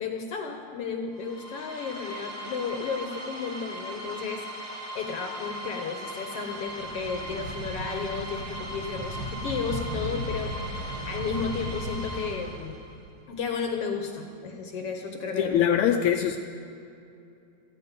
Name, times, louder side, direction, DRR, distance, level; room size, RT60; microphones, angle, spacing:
voice 1, 0.0-12.8 13.3-16.0, left 5 dB, 65° left, 4 dB, 1.5 m, -33 dB
sound 1, 1.1-13.0, equal, 45° right, 3.3 m, -39 dB
sound 2, 6.6-12.8, equal, 65° right, 3.2 m, -36 dB
voice 2, 15.4-16.4, left 9 dB, 85° left, 6 dB, 1.7 m, -23 dB
18.0 x 14.0 x 5.2 m, 2.7 s
omnidirectional pair, 3.8 m